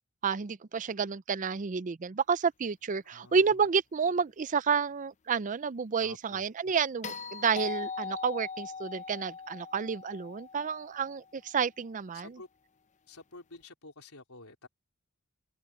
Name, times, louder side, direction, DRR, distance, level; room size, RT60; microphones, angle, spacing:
voice 1, 0.2-12.4, right 6 dB, 35° right, 0.4 m, -30 dB
voice 2, 3.0-3.5 6.0-6.5 12.1-12.5 13.1-14.7, left 3 dB, 75° left, 4.2 m, -50 dB
sound 1, 7.0-11.3 13.5-13.6, left 5 dB, 35° left, 0.6 m, -40 dB
open air
head